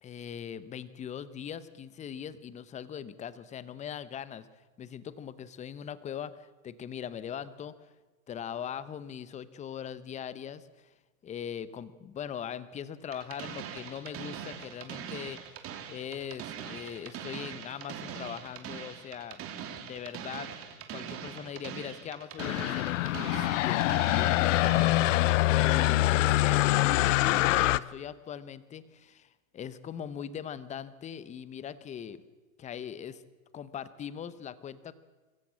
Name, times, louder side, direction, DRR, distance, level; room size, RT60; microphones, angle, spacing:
voice 1, 0.0-4.5 4.8-7.9 8.3-10.9 11.2-15.4 15.9-19.4 19.8-20.5 20.9-32.2 32.6-33.2 33.5-34.9, left 8 dB, 15° left, 16 dB, 0.8 m, -40 dB
sound 1, 13.1-25.1, right 8 dB, 30° right, 2.7 m, -42 dB
sound 2, 22.4-27.8, left 17 dB, 60° left, 0.7 m, -24 dB
25.0 x 14.5 x 7.3 m, 1.2 s
hypercardioid pair, 125°, 43 cm